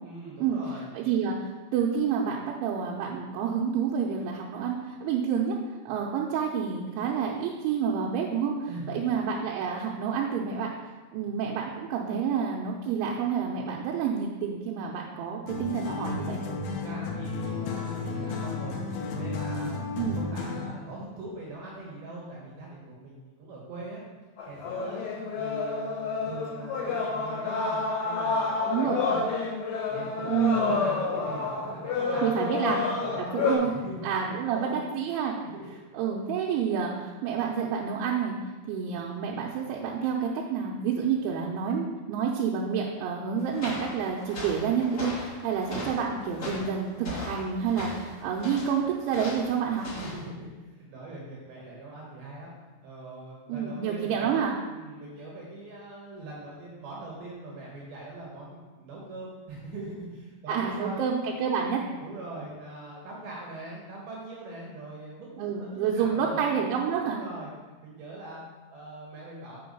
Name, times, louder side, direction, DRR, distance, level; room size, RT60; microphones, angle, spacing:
voice 1, 0.0-0.9 8.7-9.0 16.7-18.8 19.1-24.0 24.5-25.0 25.4-29.4 29.9-34.9 50.0-52.5 52.8-61.0 62.0-66.7 67.0-67.5 67.8-68.4 68.7-69.6, right 2 dB, 65° right, -4 dB, 2.6 m, -42 dB
voice 2, 0.9-5.6 5.9-10.7 11.1-16.4 20.0-20.2 28.7-29.0 30.3-30.8 32.2-32.9 33.2-33.7 34.0-35.4 35.9-38.4 38.7-49.9 53.5-54.6 60.5-61.8 65.4-67.2, right 7 dB, 80° right, -2 dB, 3.1 m, -29 dB
sound 1, 15.5-20.8, left 3 dB, 75° left, 2.4 m, -33 dB
sound 2, 24.4-33.6, left 4 dB, 55° left, 4.8 m, -29 dB
sound 3, 43.4-50.3, left 1 dB, 25° left, 2.4 m, -39 dB
7.7 x 5.5 x 5.3 m, 1.2 s
omnidirectional pair, 5.6 m